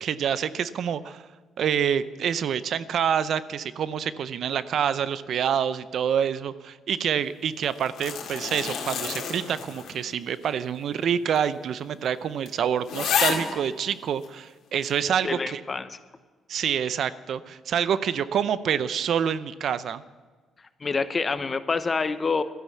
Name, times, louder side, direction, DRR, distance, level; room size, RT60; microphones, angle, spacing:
voice 1, 0.0-1.2 1.6-15.6 16.5-20.0, right 8 dB, 65° right, 15 dB, 0.5 m, -27 dB
sound 1, 7.6-10.1 10.4-10.5 11.4-11.5 11.8-11.9 12.5-12.6 12.8-13.5 14.2-14.3, left 7 dB, 80° left, 2.1 m, -29 dB
voice 2, 15.2-16.0 20.8-22.4, left 4 dB, 35° left, 12 dB, 0.8 m, -27 dB
13.0 x 10.0 x 7.2 m, 1.4 s
cardioid pair, 90°, 0 cm